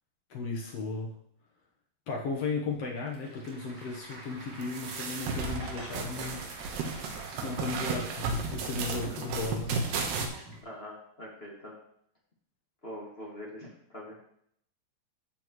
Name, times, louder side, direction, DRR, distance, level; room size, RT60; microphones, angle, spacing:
voice 1, 0.3-1.1 2.1-6.6 7.3-9.9, left 4 dB, 80° left, -1 dB, 1.4 m, -35 dB
Applause / Crowd, 2.7-9.4, right 2 dB, 35° right, 1.1 m, -49 dB
sound 1, 4.6-10.3, right 4 dB, 80° right, 3.3 m, -34 dB
Boat Water vehicle, 5.3-10.6, right 1 dB, 50° right, 3.7 m, -48 dB
voice 2, 10.6-11.7 12.8-14.2, equal, 30° left, -4 dB, 1.0 m, -43 dB
12.5 x 7.4 x 3.1 m, 0.69 s
omnidirectional pair, 4.6 m